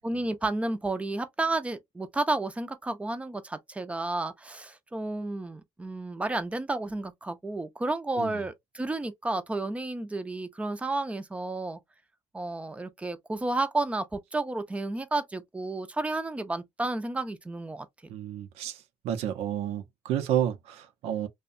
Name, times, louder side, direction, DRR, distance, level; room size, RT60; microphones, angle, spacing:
voice 1, 0.0-11.8 12.3-17.9, right 2 dB, 10° right, 0.5 m, -31 dB
voice 2, 18.1-18.8 19.0-21.3, right 10 dB, 80° right, 0.6 m, -30 dB
2.7 x 2.2 x 2.5 m
cardioid pair, 120°, 10 cm